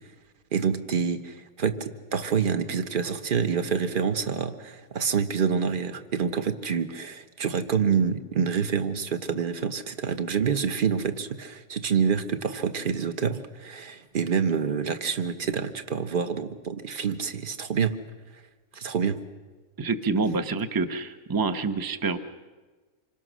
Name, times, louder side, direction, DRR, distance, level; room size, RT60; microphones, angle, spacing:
voice 1, 0.5-18.0 18.7-19.2, right 6 dB, 35° right, 9 dB, 1.3 m, -27 dB
voice 2, 19.8-22.2, right 4 dB, 15° right, 8 dB, 0.9 m, -27 dB
27.5 x 24.5 x 6.3 m, 1.3 s
omnidirectional pair, 1.6 m